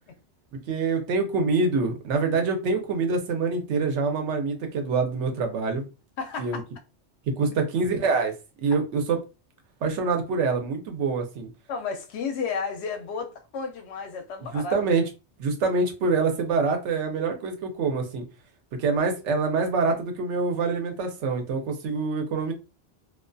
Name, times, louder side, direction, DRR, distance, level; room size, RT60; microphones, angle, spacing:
voice 1, 0.7-5.9 6.4-6.6 7.4-8.3 8.6-9.2 9.8-11.5 14.5-15.0 15.4-18.2 18.8-22.5, right 4 dB, 90° right, 0.9 m, -25 dB
voice 2, 6.2-6.6 7.4-7.5 11.7-14.8, left 5 dB, 75° left, 0.8 m, -32 dB
2.4 x 2.2 x 2.5 m
omnidirectional pair, 1.2 m